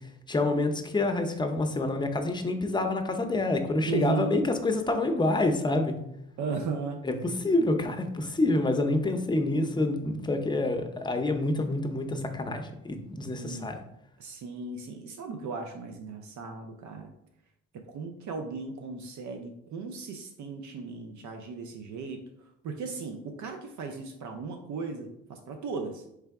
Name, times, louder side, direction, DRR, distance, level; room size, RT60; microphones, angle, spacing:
voice 1, 0.3-6.0 7.0-13.8, left 2 dB, 15° left, 5 dB, 0.6 m, -27 dB
voice 2, 3.9-4.4 6.4-7.0 13.4-13.7 14.2-17.1 17.7-26.0, right 4 dB, 70° right, 4 dB, 0.6 m, -36 dB
3.4 x 3.4 x 4.6 m, 0.80 s
cardioid pair, 90°, 30 cm